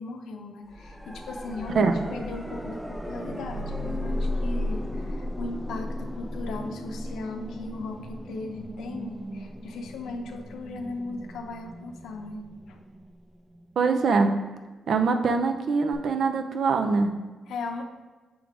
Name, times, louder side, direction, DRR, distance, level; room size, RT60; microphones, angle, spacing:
voice 1, 0.0-12.8 17.5-17.8, left 3 dB, 90° left, 5 dB, 0.7 m, -38 dB
sound 1, 0.7-13.6 15.9-16.0, left 1 dB, 5° right, 0.5 m, -35 dB
voice 2, 13.8-14.3 14.9-17.2, right 4 dB, 65° right, 6 dB, 0.6 m, -23 dB
6.2 x 3.8 x 4.7 m, 1.3 s
cardioid pair, 100°, 0 cm